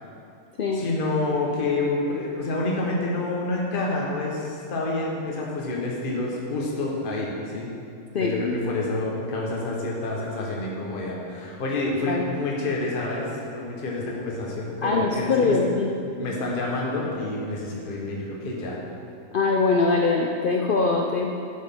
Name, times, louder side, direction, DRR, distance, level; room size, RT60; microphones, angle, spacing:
voice 1, 0.7-7.7 8.2-15.6 16.2-18.8, left 2 dB, 40° left, -3 dB, 1.2 m, -28 dB
voice 2, 8.1-8.6 12.1-12.3 14.8-15.9 19.3-21.3, left 3 dB, 70° left, 0 dB, 0.5 m, -22 dB
10.5 x 6.3 x 3.6 m, 2.5 s
omnidirectional pair, 1.5 m